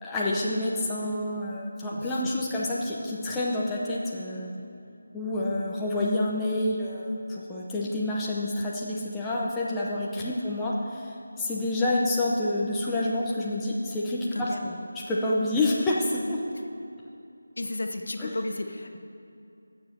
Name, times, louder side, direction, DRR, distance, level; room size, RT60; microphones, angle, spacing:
voice 1, 0.0-4.5 5.1-14.8 15.1-16.4 18.2-18.3, left 1 dB, 5° left, -6 dB, 0.7 m, -28 dB
voice 2, 2.0-2.3 10.1-10.3 14.3-14.6 17.6-19.0, left 2 dB, 65° left, 5 dB, 1.1 m, -33 dB
12.0 x 7.1 x 6.8 m, 2.6 s
figure-of-eight pair, 175°, 0 cm